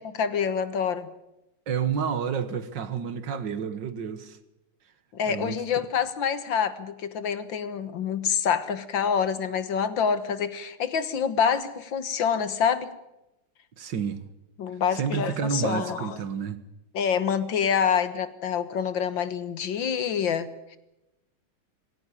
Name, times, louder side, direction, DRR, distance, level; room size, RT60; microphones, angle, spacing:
voice 1, 0.1-1.1 5.1-12.9 14.6-16.2 16.9-20.8, left 7 dB, 70° left, 2.0 m, -26 dB
voice 2, 1.7-4.4 5.3-5.9 13.8-14.2 14.9-16.6, right 7 dB, 60° right, 1.9 m, -30 dB
19.5 x 17.0 x 9.9 m
omnidirectional pair, 2.2 m